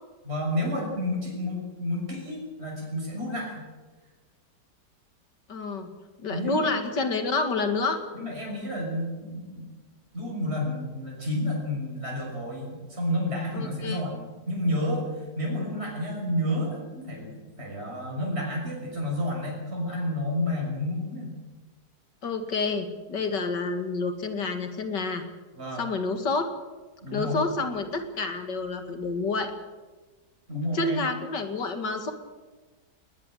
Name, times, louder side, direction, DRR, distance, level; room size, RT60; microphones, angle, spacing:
voice 1, 0.2-3.7 6.3-6.8 8.1-9.7 10.1-21.4 25.5-25.9 27.0-27.4 30.5-31.0, left 1 dB, 35° right, -2 dB, 6.6 m, -30 dB
voice 2, 5.5-5.9 6.2-8.0 13.5-14.0 22.2-25.2 25.8-26.5 27.1-29.5 30.7-32.1, left 3 dB, 80° left, 7 dB, 2.7 m, -28 dB
20.5 x 20.0 x 7.8 m, 1.3 s
omnidirectional pair, 1.9 m